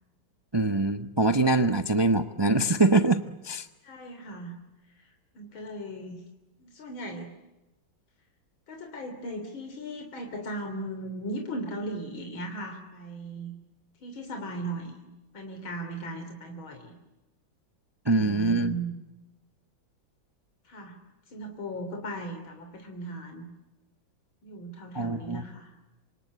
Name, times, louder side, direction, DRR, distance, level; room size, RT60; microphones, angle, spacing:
voice 1, 0.5-3.7 18.1-18.7 24.9-25.4, right 2 dB, 20° right, 9 dB, 0.8 m, -24 dB
voice 2, 3.8-4.6 5.4-6.2 6.7-7.3 8.7-13.5 14.0-16.9 18.1-18.9 20.7-21.0 21.3-23.5 24.4-25.7, right 1 dB, 85° left, 4 dB, 4.0 m, -37 dB
27.5 x 26.5 x 8.2 m, 1.0 s
omnidirectional pair, 2.1 m